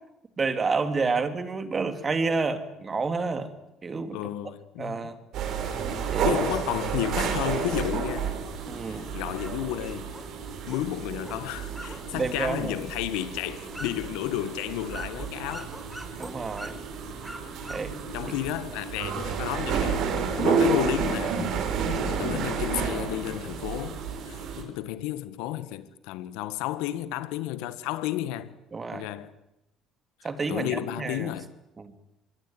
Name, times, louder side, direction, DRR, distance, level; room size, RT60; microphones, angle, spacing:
voice 1, 0.4-3.5 3.8-4.2 4.8-5.2 6.1-6.3 8.7-9.1 12.1-12.7 16.2-16.8 17.7-17.9 28.7-29.1 30.2-31.3 31.8-31.9, right 4 dB, 35° right, 3.5 m, -29 dB
voice 2, 4.1-5.1 6.2-8.3 8.9-10.1 10.6-15.7 18.1-20.0 20.4-21.4 22.1-28.5 28.9-29.3 30.2-31.5, left 13 dB, 80° left, 1.7 m, -32 dB
sound 1, 5.3-24.6, right 5 dB, 65° right, 5.9 m, -30 dB
sound 2, 9.3-18.3, right 1 dB, ahead, 5.7 m, -46 dB
25.5 x 21.0 x 9.5 m
supercardioid pair, 70°, 0 cm